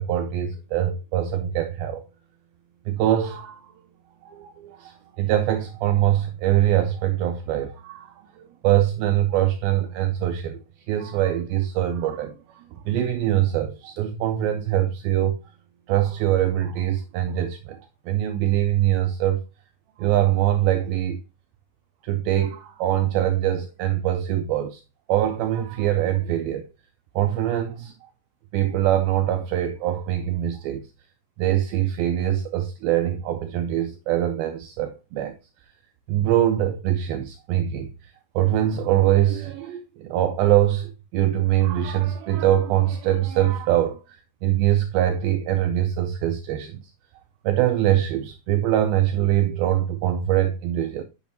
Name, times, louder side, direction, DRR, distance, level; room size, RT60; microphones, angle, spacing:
voice 1, 0.0-2.0 2.9-3.6 4.3-8.1 8.6-10.6 10.9-15.4 15.9-17.8 18.1-19.4 20.0-21.2 22.0-24.8 25.1-26.7 27.2-27.9 28.5-30.8 31.4-35.3 36.1-37.9 38.4-46.8 47.4-51.0, right 12 dB, 90° right, 2.1 m, -23 dB
8.6 x 6.0 x 2.6 m
omnidirectional pair, 4.9 m